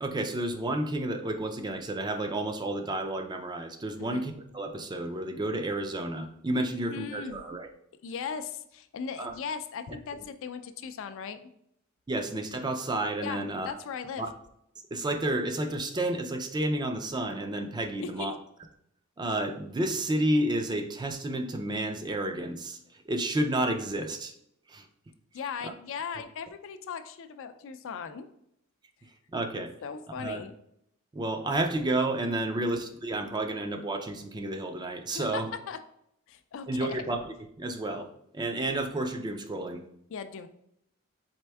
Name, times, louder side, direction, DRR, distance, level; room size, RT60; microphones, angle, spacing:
voice 1, 0.0-7.7 9.2-9.3 12.1-13.7 14.2-14.3 14.9-18.3 19.2-22.8 23.1-24.3 24.7-24.8 25.6-25.7 29.3-29.7 30.2-30.4 31.1-35.5 36.7-38.1 38.3-39.8, right 1 dB, 20° right, 6 dB, 0.4 m, -31 dB
voice 2, 6.9-7.4 8.0-11.5 13.2-14.2 18.0-18.3 25.3-28.3 29.8-30.5 32.5-32.7 35.1-35.8 36.3-37.0 40.1-40.5, left 6 dB, 65° left, 9 dB, 0.4 m, -38 dB
4.4 x 3.4 x 3.4 m, 0.73 s
head